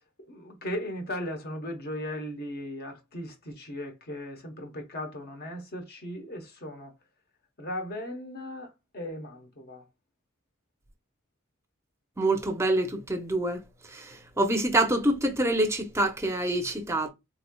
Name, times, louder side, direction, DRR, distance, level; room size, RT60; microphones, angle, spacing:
voice 1, 0.0-6.9 7.6-9.8, left 1 dB, 50° left, 0.9 m, -37 dB
voice 2, 12.2-13.6 13.9-17.1, right 1 dB, 15° right, 0.6 m, -26 dB
3.6 x 3.1 x 2.2 m
head